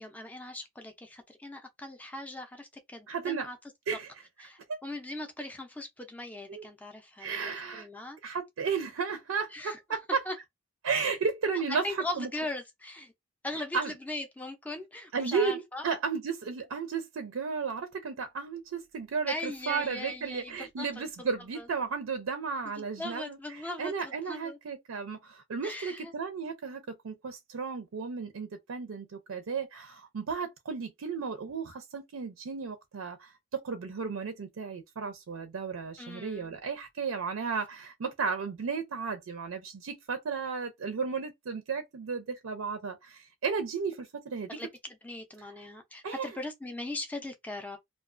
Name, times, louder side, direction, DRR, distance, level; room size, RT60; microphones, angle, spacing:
voice 1, 0.0-3.6 4.4-8.2 9.5-9.8 10.3-10.4 11.7-13.1 13.4-15.9 19.3-21.0 21.6-21.7 22.8-24.6 25.6-26.1 36.0-36.5 44.5-44.7 45.0-47.8, left 1 dB, 5° left, 0.4 m, -39 dB
voice 2, 3.1-3.5 3.9-4.1 6.5-6.6 7.2-7.9 8.2-10.2 10.8-12.3 13.7-13.9 15.1-23.4 23.8-44.6 46.0-46.3, right 5 dB, 80° right, 0.4 m, -34 dB
2.3 x 2.2 x 2.4 m
head